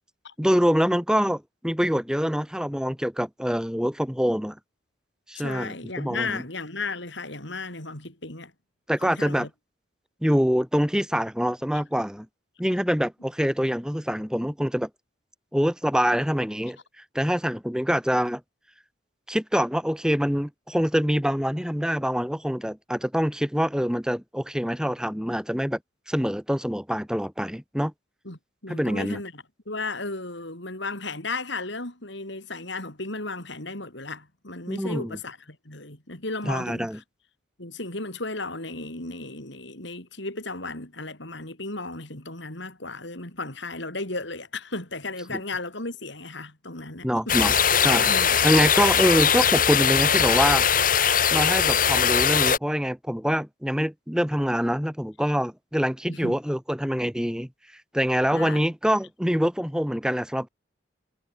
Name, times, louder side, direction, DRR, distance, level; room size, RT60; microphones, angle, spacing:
voice 1, 0.4-4.6 5.3-6.4 8.9-9.5 10.2-12.3 12.6-14.9 15.5-16.8 17.1-18.4 19.3-25.8 26.1-27.9 28.7-29.2 34.7-35.2 36.4-37.0 45.3-45.4 47.0-48.1 48.4-50.6 51.3-57.5 57.9-60.5, equal, 5° right, 3.1 m, -25 dB
voice 2, 5.3-8.5 9.0-9.5 28.2-37.0 37.6-47.3 48.1-48.4 51.1-51.2 56.1-56.3 58.3-58.6, left 3 dB, 65° left, 4.9 m, -35 dB
sound 1, 47.3-52.6, left 7 dB, 45° left, 2.6 m, -20 dB
head